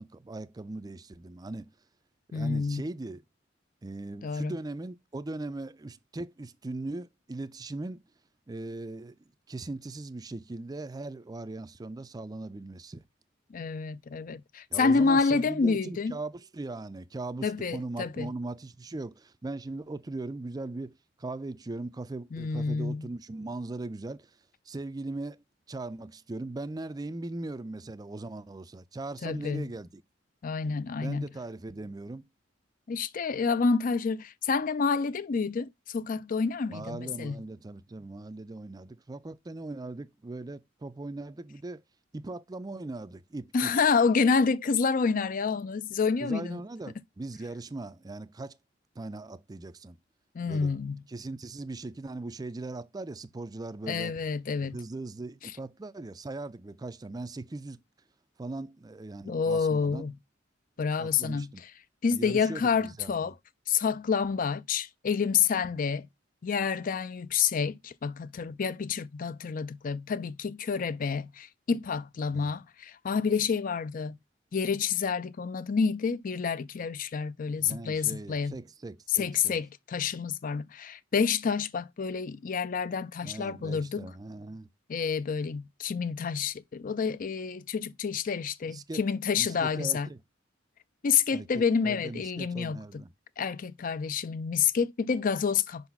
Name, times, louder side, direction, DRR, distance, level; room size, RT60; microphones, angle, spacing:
voice 1, 0.0-1.7 2.3-3.2 3.8-8.0 8.5-9.2 9.5-13.0 14.7-24.3 24.7-30.0 31.0-32.3 36.7-41.8 42.1-43.7 46.2-48.6 49.0-50.0 50.5-50.7 51.1-54.2 54.6-57.8 58.4-60.1 60.8-61.6 62.1-63.1 72.3-72.5 77.6-79.6 83.2-84.7 88.6-89.0 89.4-90.2 91.3-93.1, right 2 dB, 20° right, 0.4 m, -39 dB
voice 2, 2.3-2.8 4.2-4.6 13.5-16.2 17.4-18.3 22.3-23.1 29.2-29.7 30.4-31.3 32.9-37.4 43.5-46.6 50.3-51.0 53.9-54.8 55.4-55.5 59.3-60.1 60.8-61.5 62.0-63.3 63.7-66.1 66.4-74.2 74.5-78.5 79.1-84.1 84.9-90.1 91.0-92.8 93.4-95.9, left 5 dB, 45° left, 0.4 m, -28 dB
5.5 x 4.0 x 5.8 m
head